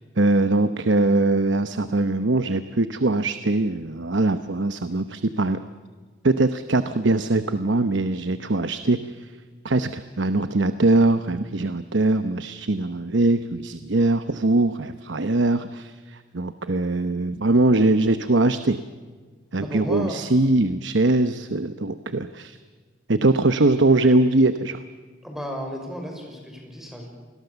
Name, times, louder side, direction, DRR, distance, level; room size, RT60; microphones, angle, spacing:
voice 1, 0.2-5.6 6.2-9.3 9.6-18.8 19.5-22.6 23.1-24.8, right 2 dB, 70° right, 11 dB, 0.9 m, -21 dB
voice 2, 19.6-20.2 25.2-27.1, equal, ahead, 1 dB, 5.7 m, -33 dB
29.0 x 21.5 x 7.0 m, 1.5 s
head